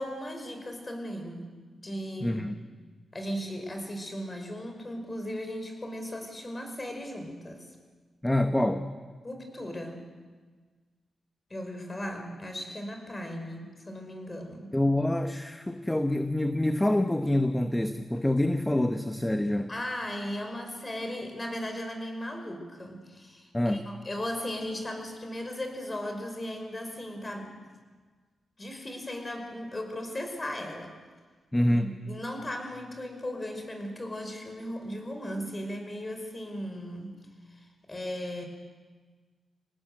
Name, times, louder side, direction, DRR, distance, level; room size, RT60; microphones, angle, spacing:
voice 1, 0.0-1.5 1.8-2.4 3.1-7.7 9.2-10.1 11.5-14.8 19.7-27.6 28.6-30.9 31.6-37.2 37.5-38.5, left 1 dB, 25° left, 5 dB, 5.4 m, -37 dB
voice 2, 2.2-2.5 8.2-8.8 14.7-19.7 23.5-23.9 31.5-32.0, left 1 dB, 10° left, 7 dB, 1.1 m, -26 dB
26.0 x 19.0 x 7.9 m, 1.5 s
cardioid pair, 80°, 0 cm